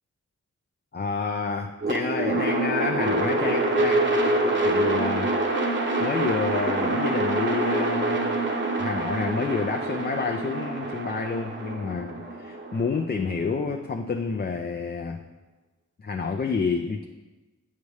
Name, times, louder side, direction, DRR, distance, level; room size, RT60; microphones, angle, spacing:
voice 1, 0.9-5.3 6.0-8.4 8.8-15.2 16.0-17.1, left 5 dB, 35° left, 3 dB, 0.4 m, -29 dB
sound 1, 1.8-13.9, right 2 dB, 40° right, 0.9 m, -26 dB
8.3 x 5.3 x 3.2 m, 1.2 s
wide cardioid pair, 55°, 29 cm